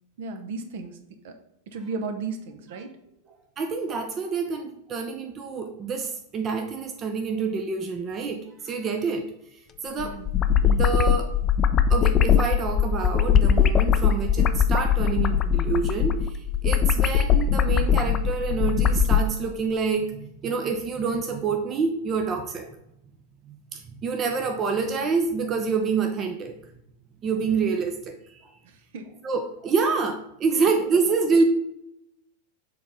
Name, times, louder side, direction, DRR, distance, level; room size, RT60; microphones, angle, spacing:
voice 1, 0.2-1.0 1.2-1.3 1.7-2.9 10.0-10.3 28.6-29.2 30.6-30.7, right 4 dB, 55° right, 7 dB, 1.0 m, -35 dB
voice 2, 3.6-9.3 9.8-10.2 10.6-11.3 11.9-22.7 23.7-26.5 27.2-28.4 29.2-31.4, right 5 dB, 30° right, 5 dB, 0.7 m, -27 dB
sound 1, 10.0-19.2, left 8 dB, 25° left, 0.5 m, -21 dB
6.8 x 4.1 x 5.1 m, 0.80 s
figure-of-eight pair, 90°, 0 cm